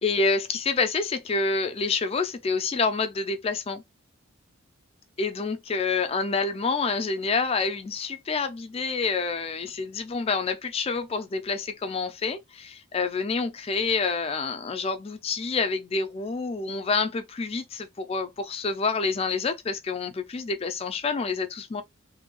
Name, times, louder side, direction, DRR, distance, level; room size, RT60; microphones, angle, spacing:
voice 1, 0.0-3.8 5.2-21.8, left 4 dB, 25° left, 0.3 m, -28 dB
2.6 x 2.2 x 2.9 m
head